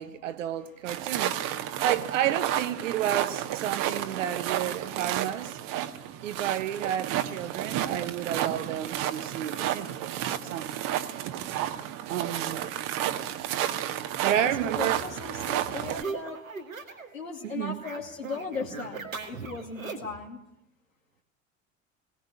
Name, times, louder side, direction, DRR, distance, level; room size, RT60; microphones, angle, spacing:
voice 1, 0.0-5.9 6.2-10.7 12.1-12.7 14.0-15.0 17.5-17.8, right 11 dB, 70° right, 1.3 m, -31 dB
sound 1, 0.9-16.0, right 11 dB, 55° right, 1.6 m, -31 dB
voice 2, 1.1-1.8 4.2-5.0 13.1-13.2 14.3-14.5 14.8-16.4 17.1-20.4, left 4 dB, 85° left, 2.7 m, -38 dB
sound 2, 14.5-17.2 17.4-20.2, right 4 dB, 90° right, 2.2 m, -40 dB
20.0 x 18.0 x 9.9 m
figure-of-eight pair, 65°, 39 cm